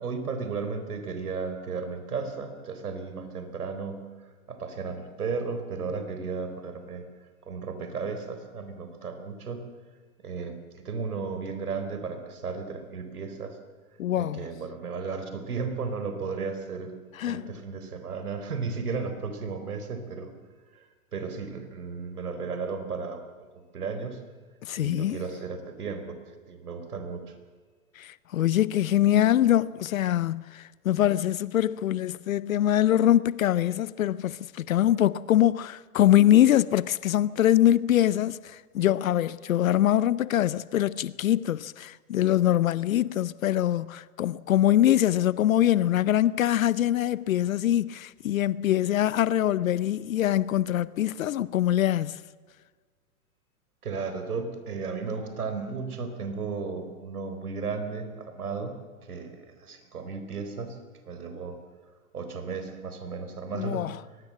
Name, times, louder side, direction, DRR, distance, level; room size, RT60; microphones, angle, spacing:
voice 1, 0.0-4.0 4.5-7.0 7.4-9.6 10.2-13.6 14.1-16.9 17.2-20.3 20.7-20.9 21.1-23.2 23.5-24.2 24.8-27.3 53.8-58.8 59.1-60.8 61.1-61.6 62.1-63.9, right 5 dB, 80° right, 4.1 m, -34 dB
voice 2, 14.0-14.5 17.1-17.5 24.6-25.2 28.0-52.2 63.5-64.0, left 12 dB, 65° left, 0.8 m, -23 dB
22.5 x 20.0 x 7.5 m
hypercardioid pair, 120°, 44 cm